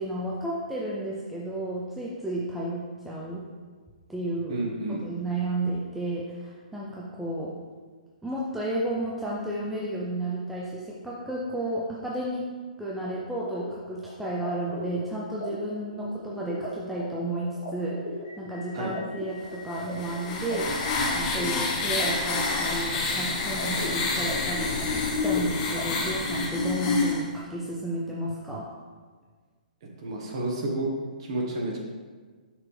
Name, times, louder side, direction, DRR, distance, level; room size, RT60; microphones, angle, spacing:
voice 1, 0.0-3.4 4.1-4.6 4.9-7.5 8.2-12.5 12.8-18.0 18.4-20.7 21.1-24.8 25.2-28.7, right 1 dB, ahead, -6 dB, 0.3 m, -32 dB
voice 2, 4.5-5.0 18.7-19.0 30.0-30.9 31.2-31.8, right 2 dB, 35° right, -1 dB, 1.1 m, -30 dB
sound 1, 13.0-25.8, left 1 dB, 35° left, 1.4 m, -40 dB
sound 2, 19.7-27.2, left 3 dB, 20° left, 0.7 m, -28 dB
6.6 x 6.0 x 3.2 m, 1.5 s
hypercardioid pair, 175°, 5 cm